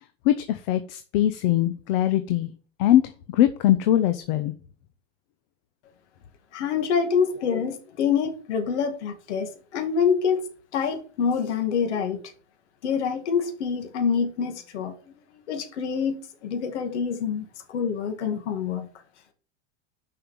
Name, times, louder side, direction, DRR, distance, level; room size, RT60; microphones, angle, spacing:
voice 1, 0.3-2.5 2.8-3.0 3.3-4.5, left 12 dB, 55° left, 11 dB, 0.9 m, -21 dB
voice 2, 6.5-10.4 10.7-12.2 12.8-14.9 15.5-16.2 16.4-18.9, left 6 dB, 85° left, 6 dB, 2.1 m, -26 dB
7.0 x 5.8 x 7.1 m, 0.40 s
supercardioid pair, 155°, 34 cm